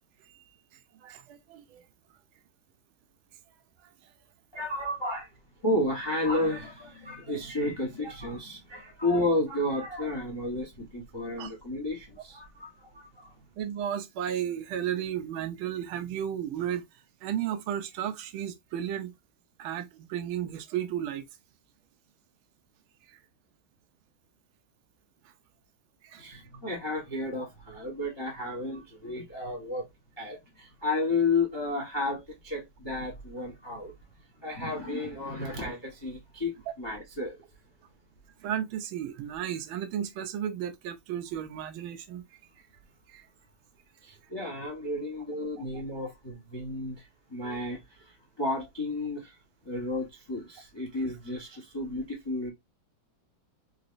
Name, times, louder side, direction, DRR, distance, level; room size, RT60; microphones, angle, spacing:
voice 1, 1.0-1.9 11.4-11.5 13.6-16.8 17.2-19.1 19.6-21.2 23.1-23.2 26.0-26.4 29.3-29.5 36.7-36.8 38.4-42.2 43.1-43.3 45.6-45.7, right 10 dB, 90° right, 1.5 m, -34 dB
voice 2, 4.5-5.3 5.6-13.3 26.2-29.9 30.2-33.9 34.4-37.4 44.0-49.4 49.6-52.5, left 2 dB, 30° left, 0.4 m, -32 dB
4.0 x 3.0 x 2.5 m
omnidirectional pair, 2.2 m